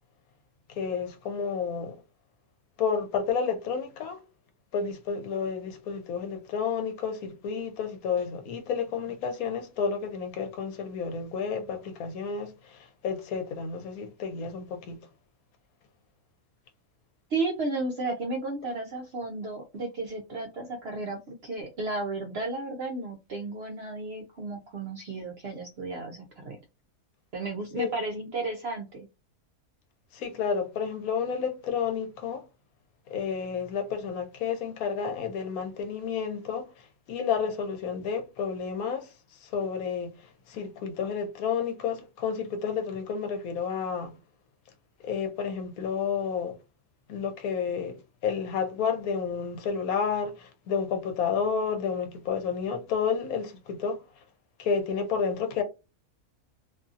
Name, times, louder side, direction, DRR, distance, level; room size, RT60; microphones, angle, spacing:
voice 1, 0.7-2.0 2.8-4.2 4.7-15.1 27.8-27.9 30.1-32.4 33.1-39.1 39.4-44.2 45.0-46.6 47.1-54.0 54.6-55.6, left 6 dB, 75° left, 1.1 m, -31 dB
voice 2, 17.3-26.6 27.3-29.1, right 2 dB, 65° right, 0.6 m, -33 dB
2.7 x 2.6 x 2.4 m
omnidirectional pair, 1.5 m